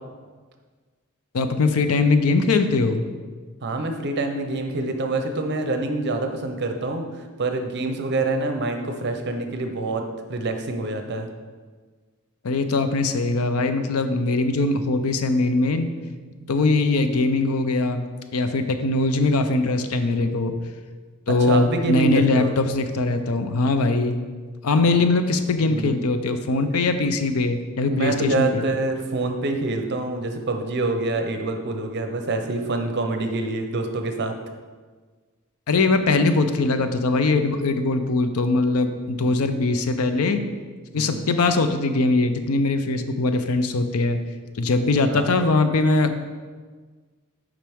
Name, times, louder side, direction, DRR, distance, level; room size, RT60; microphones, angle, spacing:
voice 1, 1.3-3.0 12.4-15.9 16.5-18.1 18.3-20.5 21.3-24.2 24.6-28.7 35.7-40.4 40.9-44.2 44.6-46.1, left 3 dB, 85° left, 9 dB, 0.5 m, -21 dB
voice 2, 3.6-7.0 7.4-11.3 16.4-16.7 20.1-20.3 21.3-22.5 25.6-25.9 27.8-34.3 39.2-39.4 40.9-41.3 45.0-45.3, right 2 dB, 50° right, 5 dB, 0.6 m, -26 dB
7.4 x 5.0 x 3.5 m, 1.4 s
head